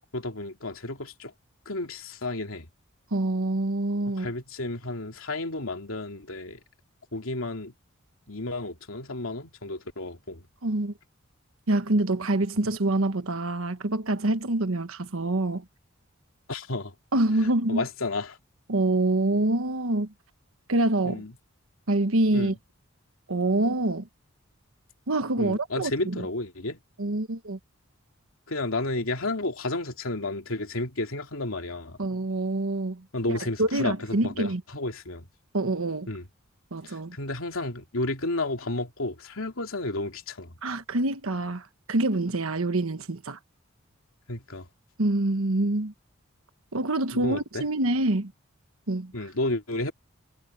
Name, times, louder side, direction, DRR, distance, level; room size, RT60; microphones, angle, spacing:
voice 1, 0.1-1.3 1.7-2.7 4.1-6.6 7.1-7.7 8.3-10.4 16.5-16.9 17.7-18.4 21.0-21.3 22.3-22.6 25.4-26.8 28.5-32.0 33.1-35.3 36.1-36.3 36.8-40.5 44.3-44.7 47.1-47.7 49.1-49.9, left 2 dB, 80° left, 2.8 m, -32 dB
voice 2, 3.1-4.3 10.6-10.9 11.7-15.6 17.1-17.8 18.7-20.1 20.7-21.2 21.9-22.5 23.3-24.1 25.1-26.3 27.0-27.6 32.0-34.6 35.5-36.1 36.7-37.2 40.6-43.4 45.0-45.9 46.7-48.3 48.9-49.1, right 2 dB, 80° right, 1.3 m, -26 dB
head